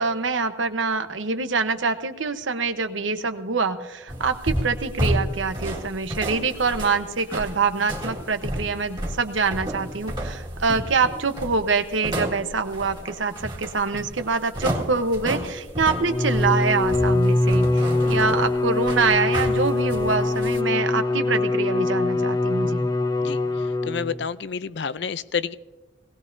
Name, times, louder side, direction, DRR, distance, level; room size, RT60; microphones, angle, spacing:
voice 1, 0.0-22.8, right 4 dB, 85° right, 8 dB, 1.0 m, -25 dB
sound 1, 4.1-20.6, equal, 25° right, 1.9 m, -32 dB
Bowed string instrument, 15.9-24.2, left 2 dB, 20° left, 0.7 m, -23 dB
voice 2, 23.8-25.5, left 6 dB, 60° left, 15 dB, 0.5 m, -29 dB
19.5 x 18.0 x 2.7 m, 1.2 s
head